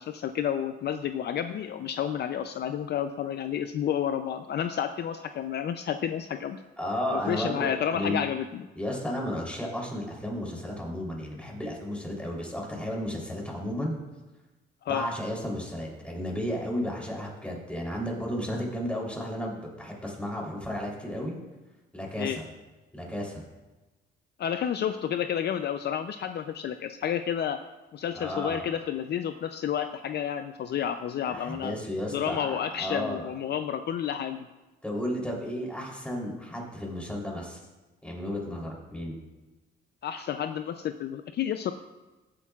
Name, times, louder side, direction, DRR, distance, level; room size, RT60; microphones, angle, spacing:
voice 1, 0.0-6.6 7.1-8.7 14.8-15.1 22.2-22.4 24.4-27.6 27.9-31.7 32.1-34.5 40.0-41.7, left 9 dB, 55° left, 9 dB, 0.5 m, -30 dB
voice 2, 6.8-8.2 8.7-14.0 14.9-21.4 21.9-22.5 22.9-23.4 28.1-28.6 31.3-33.3 34.8-37.6 38.0-39.2, equal, 5° left, -2 dB, 3.3 m, -33 dB
18.0 x 8.5 x 2.4 m, 1.1 s
cardioid pair, 90°, 20 cm